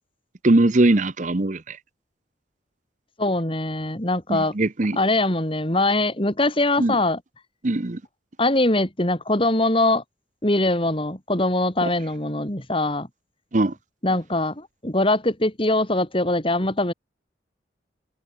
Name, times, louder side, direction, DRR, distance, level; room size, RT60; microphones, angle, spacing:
voice 1, 0.4-1.8 4.3-5.0 6.8-7.0 7.6-8.0 11.8-11.9 13.5-13.7, right 2 dB, 40° right, 0.9 m, -20 dB
voice 2, 3.2-4.5 4.9-7.2 8.4-10.0 10.4-13.1 14.0-16.9, left 2 dB, 30° left, 3.1 m, -22 dB
head